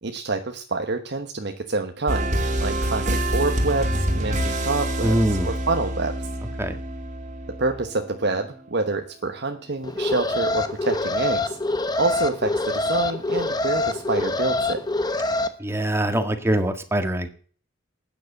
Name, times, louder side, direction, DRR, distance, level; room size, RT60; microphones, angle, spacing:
voice 1, 0.0-2.3 2.6-6.1 7.6-11.6 12.0-14.8, right 3 dB, 55° right, 5 dB, 1.1 m, -27 dB
sound 1, 2.1-8.8, right 1 dB, 35° right, 2.4 m, -26 dB
voice 2, 5.0-5.5 6.6-6.8 15.6-17.3, right 1 dB, 10° right, 7 dB, 1.7 m, -23 dB
Alarm, 9.8-15.5, left 2 dB, 20° left, 1.1 m, -25 dB
12.0 x 9.6 x 7.9 m, 0.43 s
head